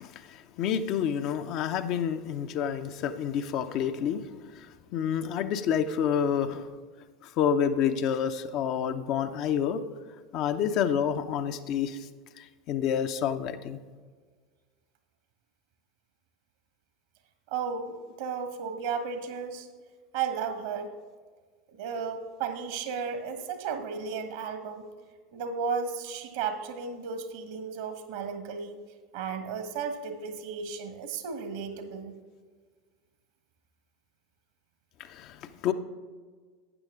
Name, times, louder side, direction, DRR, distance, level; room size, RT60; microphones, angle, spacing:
voice 1, 0.0-6.7 7.2-9.8 10.3-12.1 12.4-13.8 35.0-35.7, left 8 dB, 50° left, 8 dB, 0.6 m, -29 dB
voice 2, 17.5-19.7 20.1-20.9 21.8-24.9 25.3-28.8 29.1-32.1, right 6 dB, 60° right, 8 dB, 1.3 m, -34 dB
12.0 x 9.0 x 3.6 m, 1.5 s
figure-of-eight pair, 75°, 0 cm